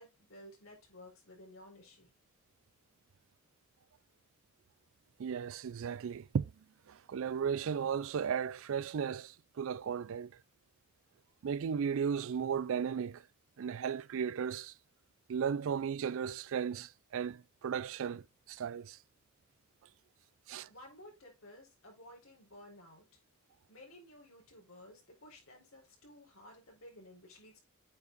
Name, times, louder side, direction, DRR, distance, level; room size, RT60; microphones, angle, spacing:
voice 1, 0.0-2.1 20.7-23.0 23.7-27.6, left 1 dB, 70° left, 4.2 m, -55 dB
voice 2, 5.2-6.5 6.9-10.3 11.4-13.2 13.6-14.7 15.3-19.0 20.5-20.7, right 7 dB, 65° right, 0.4 m, -35 dB
8.6 x 4.7 x 3.8 m
head